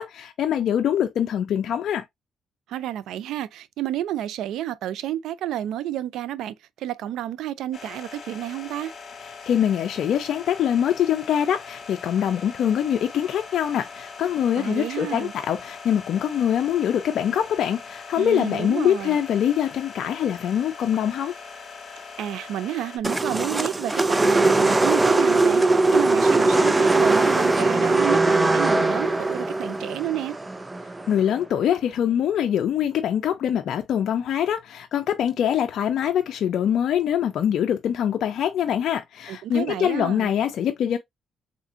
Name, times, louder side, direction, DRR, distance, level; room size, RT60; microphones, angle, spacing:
voice 1, 0.0-2.1 9.4-21.3 31.1-41.0, left 9 dB, 70° left, 0.4 m, -24 dB
voice 2, 2.7-8.9 14.6-15.3 18.2-19.2 22.2-25.6 25.9-30.4 39.3-40.3, right 12 dB, 85° right, 0.3 m, -30 dB
sound 1, 7.7-23.0, left 5 dB, 50° left, 1.3 m, -41 dB
sound 2, 23.0-31.3, right 2 dB, 20° right, 0.4 m, -20 dB
3.6 x 2.5 x 2.4 m
cardioid pair, 90°, 0 cm